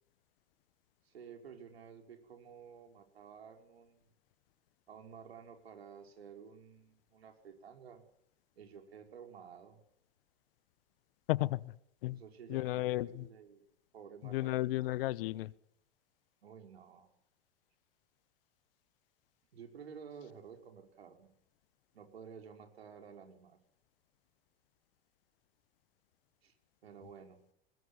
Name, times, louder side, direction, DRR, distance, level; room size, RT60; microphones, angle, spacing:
voice 1, 1.0-4.1 4.9-8.0 8.6-9.8 12.1-13.7 13.9-14.9 16.4-17.1 19.5-21.3 21.9-23.6 26.4-26.5 26.8-27.4, right 7 dB, 80° right, 5.5 m, -52 dB
voice 2, 11.3-11.7 12.0-12.2 12.5-13.2 14.3-15.5, left 17 dB, 65° left, 1.2 m, -33 dB
21.5 x 21.5 x 9.8 m
hypercardioid pair, 90°, 30 cm